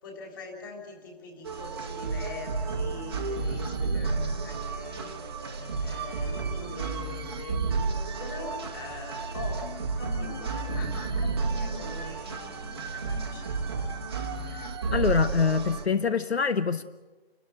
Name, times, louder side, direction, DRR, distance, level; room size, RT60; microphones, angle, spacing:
voice 1, 0.0-5.2 5.8-7.6 8.2-9.6 10.0-13.7, left 2 dB, 20° left, 3.8 m, -43 dB
sound 1, 1.4-15.9, right 4 dB, 25° right, 1.1 m, -31 dB
sound 2, 3.0-3.1 3.3-14.6, left 3 dB, 35° left, 2.6 m, -48 dB
voice 2, 14.9-16.8, left 5 dB, 75° left, 1.0 m, -25 dB
29.5 x 13.5 x 8.3 m
hypercardioid pair, 170°, 32 cm